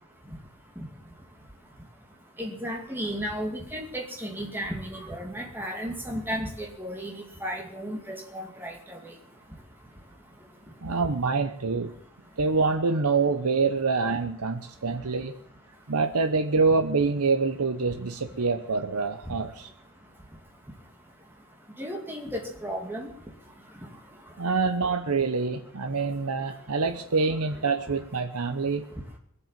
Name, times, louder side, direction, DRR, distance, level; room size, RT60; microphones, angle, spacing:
voice 1, 2.4-9.1 19.3-19.4 21.8-23.1, equal, 10° right, 1 dB, 2.4 m, -34 dB
voice 2, 10.8-11.9 12.4-15.4 15.9-19.7 24.4-28.8, right 4 dB, 90° right, 7 dB, 0.9 m, -26 dB
21.0 x 8.0 x 7.5 m, 0.68 s
head